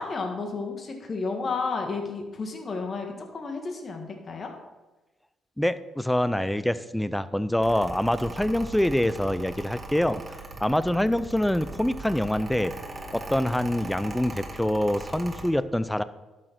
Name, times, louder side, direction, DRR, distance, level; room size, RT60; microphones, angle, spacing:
voice 1, 0.0-4.5, left 4 dB, 40° left, 3 dB, 1.6 m, -32 dB
voice 2, 5.6-10.2 10.6-12.7 13.1-16.0, left 1 dB, 5° left, 15 dB, 0.5 m, -25 dB
Mechanical fan, 7.6-15.5, right 2 dB, 25° right, 1.7 m, -40 dB
12.0 x 6.6 x 4.5 m, 1.1 s
cardioid pair, 90°, 0 cm